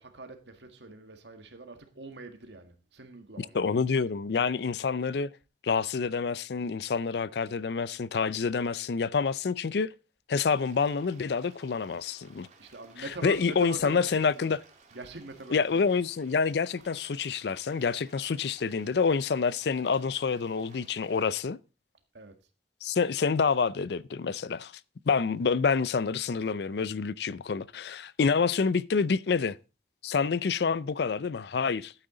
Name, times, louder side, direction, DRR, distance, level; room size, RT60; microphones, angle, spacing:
voice 1, 0.0-3.6 12.6-14.5 14.9-16.0 22.1-22.3, right 3 dB, 90° right, 1.8 m, -43 dB
voice 2, 3.4-5.3 5.6-9.9 10.3-12.5 13.2-14.6 15.5-21.6 22.8-24.7 25.1-29.6 30.0-31.9, left 5 dB, 70° left, 0.4 m, -27 dB
sound 1, 10.4-21.4, right 4 dB, 40° right, 2.2 m, -58 dB
12.0 x 8.9 x 3.8 m
head